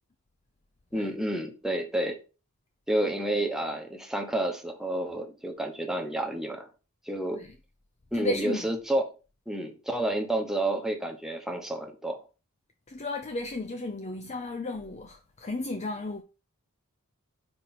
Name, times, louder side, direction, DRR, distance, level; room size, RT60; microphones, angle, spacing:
voice 1, 0.9-2.2 2.9-6.7 7.1-7.4 8.1-9.1 9.5-12.2, right 1 dB, ahead, 0.9 m, -30 dB
voice 2, 8.1-8.7 12.9-16.2, left 2 dB, 30° left, 0.5 m, -34 dB
4.4 x 4.4 x 5.8 m
head